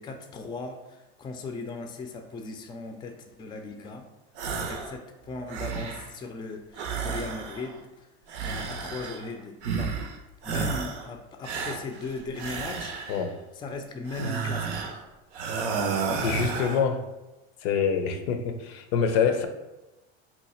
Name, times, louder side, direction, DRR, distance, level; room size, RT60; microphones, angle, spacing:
voice 1, 0.0-4.1 4.6-8.1 8.4-10.1 10.4-13.1 13.6-14.9, left 3 dB, 15° left, 5 dB, 0.3 m, -38 dB
sound 1, 4.4-5.0 5.3-6.2 6.7-7.8 8.3-9.3 9.6-10.2 10.4-11.1 11.4-13.3 14.1-15.0 15.3-16.9, right 5 dB, 90° right, 0.6 m, -32 dB
voice 2, 16.2-17.1 17.6-19.5, left 6 dB, 75° left, 7 dB, 0.5 m, -25 dB
2.8 x 2.3 x 4.2 m, 1.0 s
supercardioid pair, 95°, 33 cm